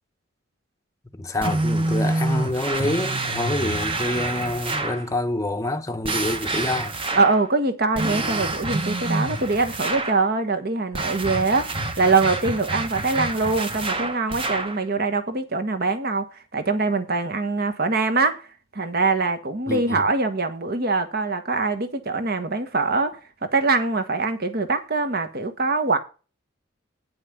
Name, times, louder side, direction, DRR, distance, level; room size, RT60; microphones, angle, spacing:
voice 1, 1.1-7.0 19.7-20.0, left 1 dB, 15° left, 0.8 m, -27 dB
sound 1, 1.4-5.1 6.0-7.5 7.9-10.2 10.9-14.8, right 2 dB, 25° right, 1.0 m, -27 dB
voice 2, 7.1-18.5 18.7-26.0, right 3 dB, 50° right, 1.3 m, -23 dB
9.1 x 5.8 x 5.9 m
head